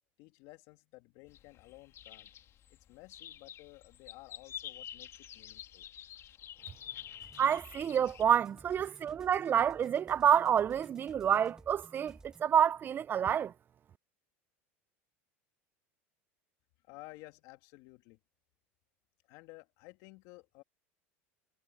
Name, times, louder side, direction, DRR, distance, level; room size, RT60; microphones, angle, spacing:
voice 1, 0.2-2.3 2.7-5.9 9.0-9.1 16.9-18.2 19.3-20.6, left 22 dB, 65° left, 2.5 m, -54 dB
sound 1, 1.3-8.2, left 10 dB, 45° left, 3.2 m, -48 dB
sound 2, 7.2-12.4, right 2 dB, 10° right, 1.7 m, -56 dB
voice 2, 7.4-13.5, right 9 dB, 30° right, 0.5 m, -28 dB
supercardioid pair, 100°, 7 cm